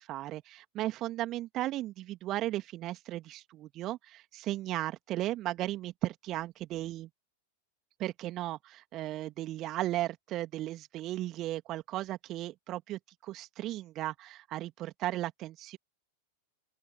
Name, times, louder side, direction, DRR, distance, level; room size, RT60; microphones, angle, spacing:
voice 1, 0.0-7.1 8.0-15.8, right 15 dB, 35° right, 2.6 m, -36 dB
open air
figure-of-eight pair, 90°, 0 cm